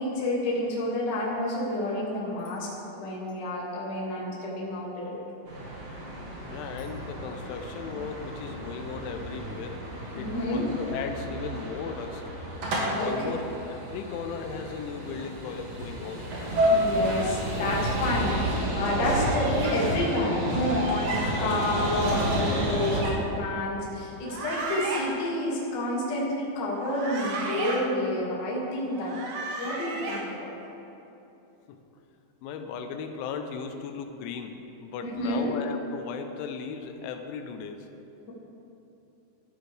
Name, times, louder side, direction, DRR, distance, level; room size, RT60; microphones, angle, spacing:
voice 1, 0.0-5.2 10.2-10.6 12.9-13.1 16.7-29.2 29.6-30.5 35.0-35.5, left 1 dB, 40° left, -5 dB, 1.7 m, -29 dB
sound 1, 5.5-23.0, right 1 dB, 45° right, 2.6 m, -30 dB
voice 2, 6.5-9.8 10.1-12.2 13.0-16.3 31.7-31.8 32.4-37.9, left 6 dB, 85° left, 6 dB, 3.2 m, -36 dB
sound 2, 19.2-19.8 20.6-21.2 22.3-23.1 24.2-25.0 26.7-27.8 28.9-30.2, right 3 dB, 70° right, 3.6 m, -35 dB
15.0 x 12.0 x 3.4 m, 2.9 s
omnidirectional pair, 5.3 m